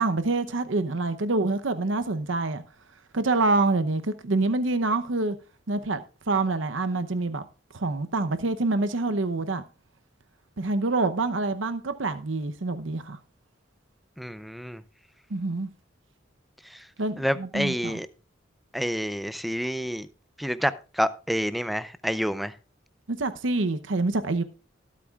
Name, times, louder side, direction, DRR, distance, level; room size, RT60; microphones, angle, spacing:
voice 1, 0.0-2.6 3.1-5.4 5.7-6.0 6.3-7.5 7.7-9.6 10.6-13.2 15.3-15.7 17.0-18.0 23.1-24.4, right 3 dB, 85° right, 0.8 m, -26 dB
voice 2, 14.2-14.8 16.7-16.8 17.2-18.1 18.7-20.1 20.4-22.5, equal, ahead, 0.5 m, -28 dB
19.5 x 8.5 x 2.4 m
head